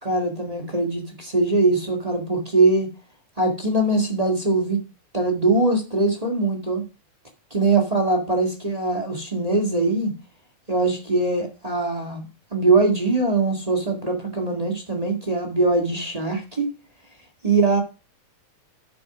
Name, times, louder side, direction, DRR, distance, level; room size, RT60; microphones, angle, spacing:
voice 1, 0.0-2.9 3.4-4.8 5.1-6.8 7.5-10.1 10.7-12.2 12.5-16.7 17.4-17.8, right 3 dB, 15° right, 3 dB, 1.5 m, -22 dB
8.4 x 5.9 x 6.0 m, 0.30 s
omnidirectional pair, 3.4 m